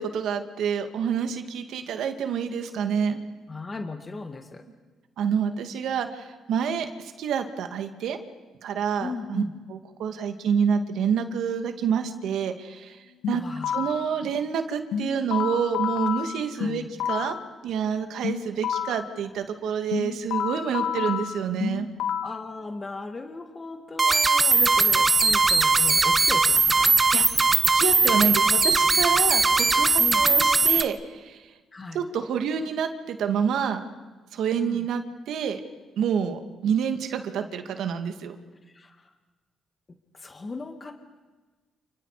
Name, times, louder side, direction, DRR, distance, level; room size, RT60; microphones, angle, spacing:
voice 1, 0.0-3.2 5.2-6.9 7.2-8.2 8.6-9.4 9.7-13.0 13.3-13.4 13.7-17.4 17.6-21.9 27.1-27.2 27.7-31.4 31.9-33.8 34.3-35.6 36.0-38.4, right 7 dB, 75° right, 6 dB, 2.2 m, -28 dB
voice 2, 3.5-4.6 9.0-9.5 13.3-13.8 16.5-16.9 22.2-26.9 30.0-30.3 31.7-32.1 34.6-34.9 38.6-39.1 40.1-40.9, left 3 dB, 30° left, 5 dB, 2.2 m, -37 dB
sound 1, 13.2-14.1 14.9-17.4 18.2-19.1 19.9-22.4, left 8 dB, 85° left, 1.7 m, -29 dB
sound 2, 24.0-30.8, right 3 dB, 25° right, 1.2 m, -20 dB
29.5 x 29.5 x 5.1 m, 1.3 s
cardioid pair, 90°, 0 cm